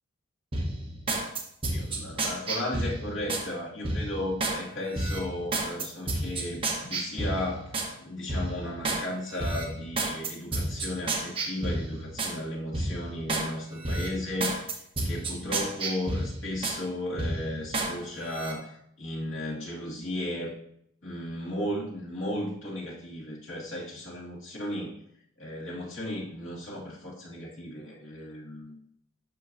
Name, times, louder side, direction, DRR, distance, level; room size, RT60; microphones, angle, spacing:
sound 1, 0.5-3.5 3.8-4.6 4.9-7.9 8.3-9.0 9.4-12.4 12.7-13.5 13.8-16.8 17.2-17.9 18.3-18.5, right 2 dB, 25° right, 1.1 m, -31 dB
voice 1, 1.7-20.6 21.0-25.0 25.4-28.7, left 1 dB, 65° left, -4 dB, 2.2 m, -35 dB
12.5 x 4.6 x 2.6 m, 0.71 s
head